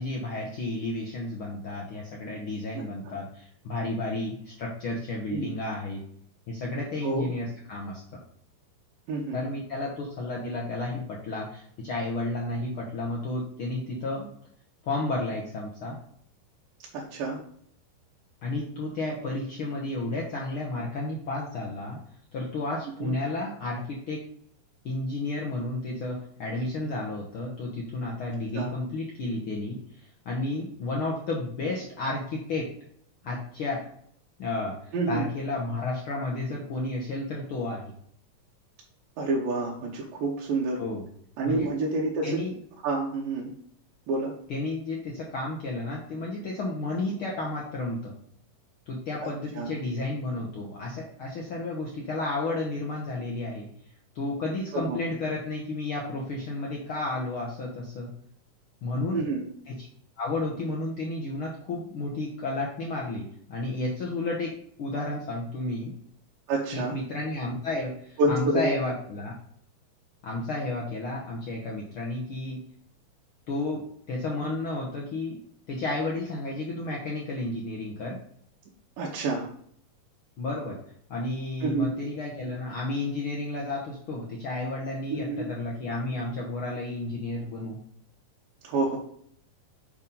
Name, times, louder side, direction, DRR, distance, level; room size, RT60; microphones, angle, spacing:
voice 1, 0.0-6.0 6.5-8.2 9.3-14.3 14.8-16.0 18.4-22.0 22.3-24.2 24.8-32.7 33.2-33.9 34.4-37.9 40.8-41.0 41.4-41.7 42.2-42.5 44.5-48.1 48.9-53.7 54.1-58.1 58.8-59.2 59.7-59.9 60.2-64.5 64.8-65.9 66.7-69.3 70.2-72.6 73.5-75.4 75.7-78.2 80.4-80.8 81.1-87.8, left 2 dB, 70° left, -2 dB, 1.2 m, -32 dB
voice 2, 2.7-3.2 5.3-5.5 7.0-7.3 9.1-9.4 16.9-17.4 23.0-23.1 28.5-28.7 34.9-35.3 39.2-40.8 41.4-42.4 42.8-43.5 44.1-44.3 49.2-49.3 49.6-49.7 54.7-55.0 59.1-59.4 66.5-67.0 68.2-68.7 79.0-79.5 81.6-81.9 85.1-85.5 88.6-89.0, right 3 dB, 85° right, -4 dB, 2.7 m, -28 dB
7.2 x 3.6 x 5.4 m, 0.65 s
omnidirectional pair, 3.8 m